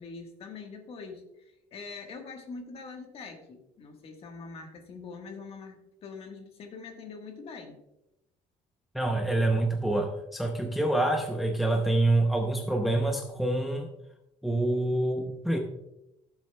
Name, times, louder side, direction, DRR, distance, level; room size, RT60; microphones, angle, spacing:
voice 1, 0.0-7.8, left 4 dB, 40° left, 4 dB, 1.4 m, -44 dB
voice 2, 8.9-13.9 14.4-15.6, right 2 dB, ahead, 3 dB, 0.6 m, -26 dB
15.0 x 7.3 x 2.2 m, 0.89 s
cardioid pair, 160°, 15 cm